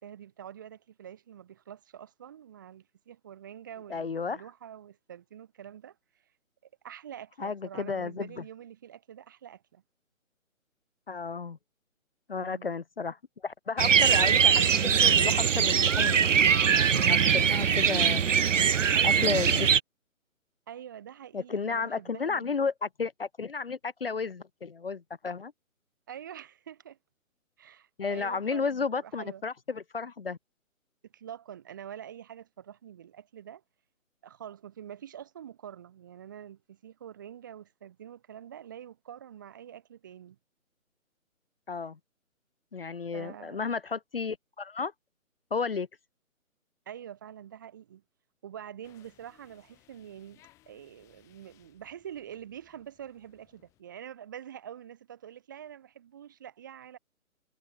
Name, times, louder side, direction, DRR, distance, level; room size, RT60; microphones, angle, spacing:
voice 1, 0.0-6.0 6.8-9.8 12.4-12.7 18.9-19.6 20.7-22.6 26.1-27.0 27.6-29.4 31.1-33.6 34.2-40.4 43.1-43.7 46.8-48.0 48.4-57.0, right 10 dB, 15° right, 1.6 m, -46 dB
voice 2, 3.9-4.4 7.4-8.4 11.1-11.6 12.3-16.2 16.7-18.2 19.0-19.7 21.3-25.5 28.0-30.4 41.7-42.0 42.7-44.9 45.5-45.9, left 5 dB, 45° left, 1.1 m, -33 dB
sound 1, 13.8-19.8, right 7 dB, 65° right, 0.8 m, -22 dB
sound 2, 48.8-53.8, left 16 dB, 5° left, 2.7 m, -64 dB
hypercardioid pair, 175°, 41 cm